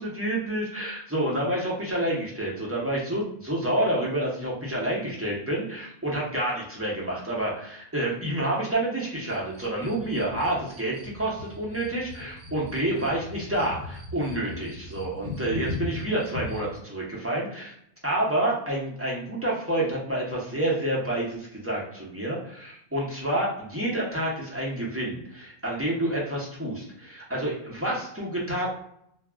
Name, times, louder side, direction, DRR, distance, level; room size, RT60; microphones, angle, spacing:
voice 1, 0.0-17.7 18.0-28.7, right 1 dB, 15° right, -5 dB, 0.6 m, -28 dB
sound 1, 9.3-16.8, left 2 dB, 65° right, 1.0 m, -39 dB
2.3 x 2.0 x 3.4 m, 0.70 s
omnidirectional pair, 1.2 m